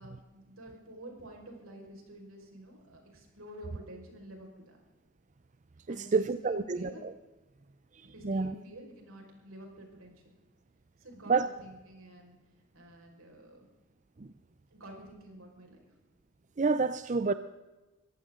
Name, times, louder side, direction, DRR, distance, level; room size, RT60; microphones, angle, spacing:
voice 1, 0.0-4.8 5.9-7.0 8.1-10.3 11.0-12.4 12.7-13.7 14.7-15.8, right 1 dB, 80° right, 1 dB, 5.2 m, -50 dB
voice 2, 5.9-7.1 8.2-8.5 11.3-11.5 14.2-14.3 16.6-17.3, right 4 dB, 35° right, 12 dB, 0.5 m, -28 dB
23.5 x 15.0 x 3.8 m, 1.1 s
head